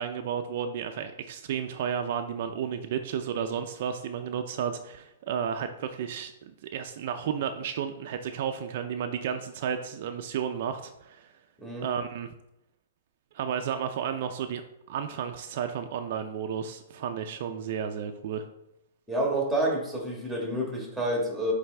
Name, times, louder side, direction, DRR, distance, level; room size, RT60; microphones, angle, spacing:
voice 1, 0.0-11.3 11.8-12.3 13.3-14.6 14.9-18.5, right 8 dB, 55° right, 6 dB, 0.5 m, -32 dB
voice 2, 11.6-11.9 19.1-21.5, right 1 dB, ahead, -1 dB, 1.6 m, -28 dB
8.7 x 3.4 x 3.4 m, 0.85 s
hypercardioid pair, 145°, 0 cm